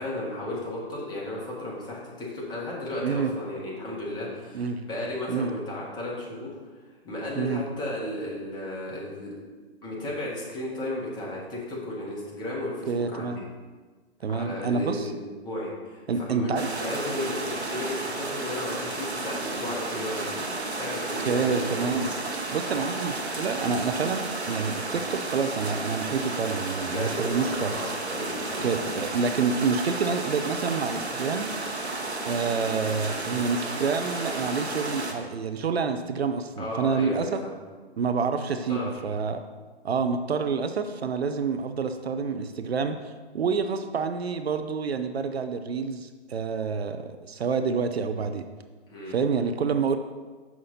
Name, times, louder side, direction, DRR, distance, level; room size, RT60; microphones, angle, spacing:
voice 1, 0.0-6.5 7.0-9.3 9.8-13.4 14.3-20.4 20.7-22.1 26.9-28.7 36.6-37.5 38.4-38.9 48.9-49.1, left 1 dB, 15° left, -4 dB, 1.5 m, -34 dB
voice 2, 3.0-3.3 4.5-4.9 5.3-5.5 7.4-7.6 12.9-13.4 14.2-15.1 16.1-16.7 21.2-22.1 22.5-27.7 28.6-31.5 32.2-37.4 38.0-39.4 39.8-43.0 43.3-48.5 49.1-50.0, right 5 dB, 70° right, 9 dB, 0.6 m, -28 dB
sound 1, 16.6-35.1, right 2 dB, 85° right, 1.1 m, -32 dB
6.3 x 5.8 x 4.1 m, 1.4 s
figure-of-eight pair, 130°, 32 cm